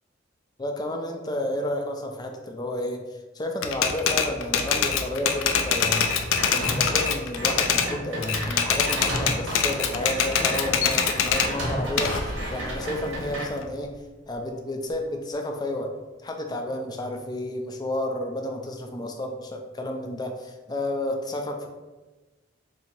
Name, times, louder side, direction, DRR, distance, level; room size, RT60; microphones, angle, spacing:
voice 1, 0.6-13.9 14.3-15.9 16.2-21.7, left 1 dB, 20° left, 3 dB, 0.4 m, -31 dB
Typewriter, 3.6-7.9 8.2-11.5 12.0-13.6, left 7 dB, 85° left, 0.4 m, -24 dB
sound 1, 6.0-7.0 7.4-13.5, right 1 dB, 90° right, 1.1 m, -32 dB
Bird, 11.4-14.4 14.9-15.0 15.3-15.6 16.4-16.5, equal, 35° right, 0.6 m, -39 dB
2.8 x 2.7 x 4.3 m, 1.2 s
head